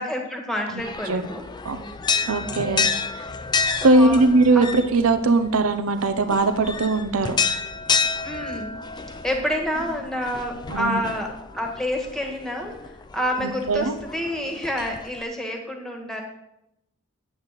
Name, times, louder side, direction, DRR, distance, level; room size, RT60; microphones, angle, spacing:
voice 1, 0.0-1.4 2.2-2.7 3.8-4.2 4.5-4.6 8.2-8.7 9.2-16.2, equal, ahead, 1 dB, 1.5 m, -28 dB
sound 1, 0.8-15.2, left 5 dB, 20° left, 0.4 m, -30 dB
voice 2, 2.3-2.9 3.1-3.2 3.8-7.4 10.7-11.0 13.4-14.0, right 2 dB, 85° right, 9 dB, 0.7 m, -20 dB
9.3 x 7.9 x 4.1 m, 0.86 s
head